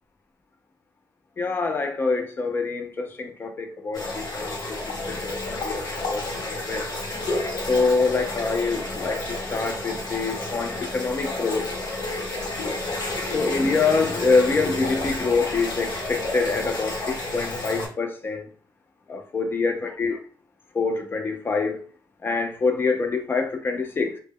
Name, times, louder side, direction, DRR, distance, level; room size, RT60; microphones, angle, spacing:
voice 1, 1.4-6.9 7.7-11.7 13.3-18.5 19.1-20.2 20.7-21.8 22.2-24.2, left 4 dB, 30° left, 0.4 m, -25 dB
sound 1, 3.9-17.9, left 2 dB, 60° left, 0.9 m, -30 dB
2.0 x 2.0 x 3.5 m
wide cardioid pair, 165°, 8 cm